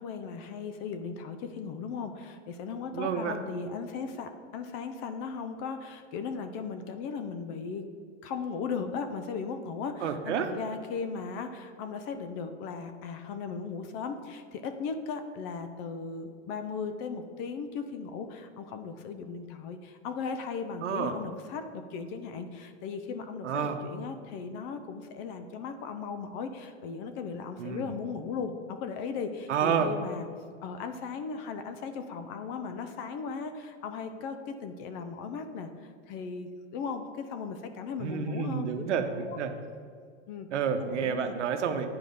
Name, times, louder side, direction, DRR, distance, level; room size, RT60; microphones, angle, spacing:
voice 1, 0.0-7.8 8.2-30.3 30.6-38.9 39.3-39.4 40.3-40.5 40.7-41.4, left 5 dB, 30° left, 8 dB, 0.4 m, -37 dB
voice 2, 2.9-3.4 10.0-10.5 20.8-21.1 23.4-23.8 27.6-27.9 29.5-29.9 38.0-39.5 40.5-41.9, right 7 dB, 90° right, 7 dB, 1.0 m, -29 dB
9.2 x 4.9 x 5.3 m, 2.1 s
supercardioid pair, 150°, 35 cm